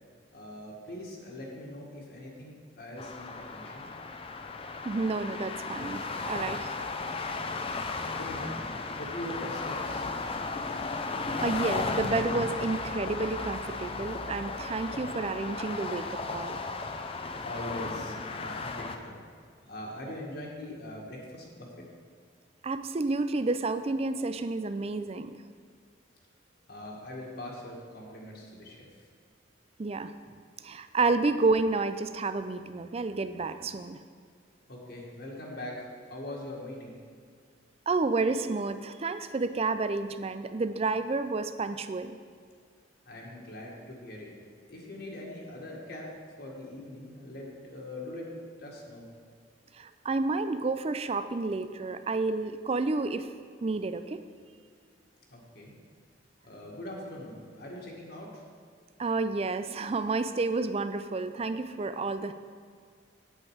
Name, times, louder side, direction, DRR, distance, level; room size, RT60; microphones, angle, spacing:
voice 1, 0.3-3.9 8.2-10.5 17.4-19.2 19.6-21.7 26.7-28.9 34.7-37.0 43.1-44.3 44.7-46.1 46.4-49.1 55.3-55.7 56.4-58.4, left 1 dB, 55° left, -2 dB, 1.9 m, -42 dB
sound 1, 3.0-19.0, left 3 dB, 30° left, 0.6 m, -35 dB
voice 2, 4.8-6.7 11.1-16.6 22.6-25.4 29.8-30.1 30.6-34.0 37.9-42.2 49.7-53.3 53.6-54.2 59.0-62.3, right 3 dB, 30° right, 11 dB, 0.4 m, -30 dB
8.8 x 8.6 x 4.9 m, 2.1 s
head